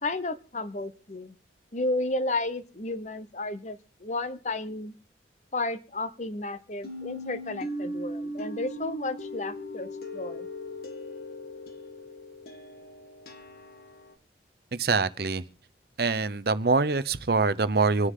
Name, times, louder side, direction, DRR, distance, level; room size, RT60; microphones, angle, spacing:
voice 1, 0.0-1.4 1.7-4.9 5.5-10.5, left 2 dB, 40° left, 13 dB, 1.0 m, -32 dB
sound 1, 6.8-14.1, left 1 dB, 55° left, 1.8 m, -39 dB
voice 2, 14.7-15.4 16.0-18.1, right 4 dB, 55° right, 14 dB, 0.7 m, -24 dB
26.5 x 9.8 x 3.8 m, 0.35 s
head